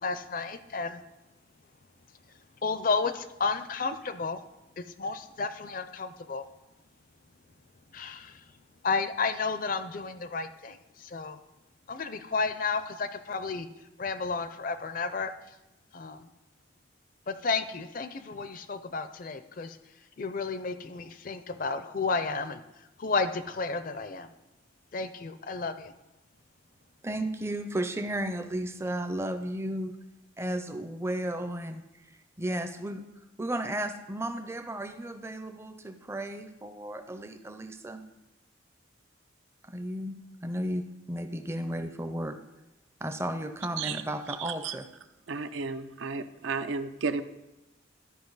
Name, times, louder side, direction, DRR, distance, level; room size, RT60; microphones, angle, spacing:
voice 1, 0.0-1.0 2.6-4.4 4.8-6.5 7.9-8.4 8.8-11.4 11.9-13.7 14.0-15.3 15.9-16.3 17.3-19.8 20.2-22.6 23.0-24.3 24.9-25.9, left 4 dB, 45° left, 11 dB, 0.4 m, -32 dB
voice 2, 27.0-30.0 30.4-32.1 32.4-33.1 33.4-38.0 39.6-42.4 43.0-44.9, right 1 dB, 15° right, 8 dB, 0.5 m, -34 dB
voice 3, 44.4-44.7 45.3-47.2, right 4 dB, 80° right, 10 dB, 0.5 m, -33 dB
12.5 x 5.2 x 3.9 m, 0.97 s
head